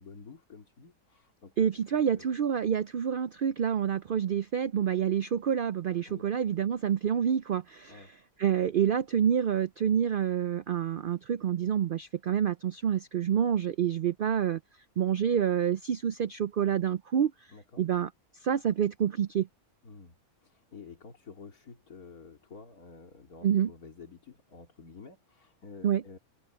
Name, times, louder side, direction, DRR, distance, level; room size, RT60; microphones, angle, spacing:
voice 1, 0.0-1.5 2.1-2.3 6.0-6.3 7.9-8.1 17.5-17.8 19.8-26.2, left 5 dB, 80° left, 3.1 m, -50 dB
voice 2, 1.6-8.1 8.4-14.6 15.0-17.3 17.8-18.1 18.4-19.5 23.4-23.7 25.8-26.0, right 8 dB, 90° right, 0.4 m, -27 dB
omnidirectional pair, 1.6 m